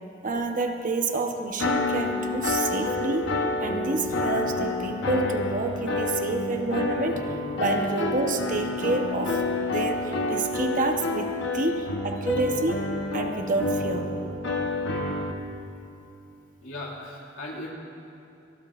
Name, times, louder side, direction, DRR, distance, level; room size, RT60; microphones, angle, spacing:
voice 1, 0.2-3.4 3.6-9.4 9.7-12.8 13.1-14.1, right 3 dB, 45° right, 4 dB, 0.9 m, -28 dB
sound 1, 1.6-15.3, left 2 dB, 65° left, 1.0 m, -28 dB
voice 2, 16.6-17.7, left 1 dB, 85° left, -3 dB, 2.5 m, -38 dB
26.0 x 12.5 x 2.5 m, 2.8 s
head